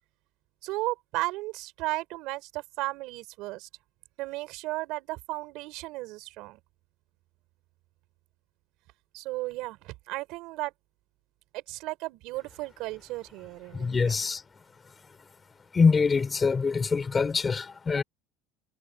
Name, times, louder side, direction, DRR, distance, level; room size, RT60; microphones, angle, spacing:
voice 1, 0.6-3.7 4.2-6.6 9.1-10.7 11.5-14.2, right 20 dB, 60° right, 5.0 m, -35 dB
voice 2, 13.7-14.4 15.7-18.0, left 5 dB, 20° left, 3.6 m, -24 dB
cardioid pair, 145°, 0 cm